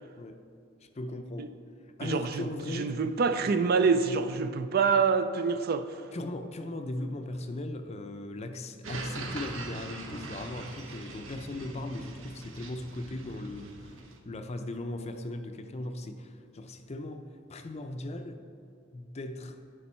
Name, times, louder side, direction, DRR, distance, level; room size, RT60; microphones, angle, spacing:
voice 1, 0.8-1.5 1.8-2.9 6.1-17.2 17.5-18.4 18.9-19.6, left 1 dB, 30° left, 7 dB, 0.5 m, -38 dB
voice 2, 2.0-2.4 2.7-5.9, right 5 dB, 50° right, 10 dB, 0.4 m, -26 dB
sound 1, 8.8-14.2, right 3 dB, 70° right, 0.9 m, -42 dB
11.0 x 5.3 x 4.3 m, 2.4 s
head